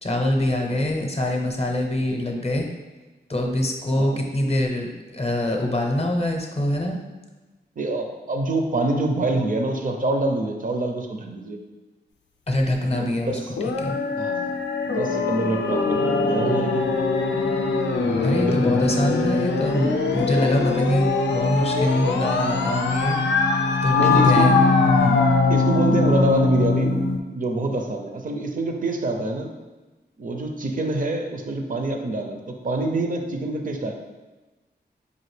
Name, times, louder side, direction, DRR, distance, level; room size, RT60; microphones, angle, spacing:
voice 1, 0.0-2.7 3.3-7.0 12.5-13.4 13.8-14.0 18.2-23.2 23.8-24.0 24.2-25.2, left 1 dB, 35° left, 2 dB, 0.6 m, -24 dB
voice 2, 7.8-11.6 12.9-13.4 14.2-14.5 14.8-16.8 18.5-18.6 23.9-24.6 25.5-29.5 30.2-33.9, right 2 dB, 50° right, 4 dB, 0.5 m, -26 dB
sound 1, 13.6-27.2, left 3 dB, 90° left, 0.4 m, -21 dB
4.9 x 2.5 x 3.2 m, 1.2 s
wide cardioid pair, 80°, 18 cm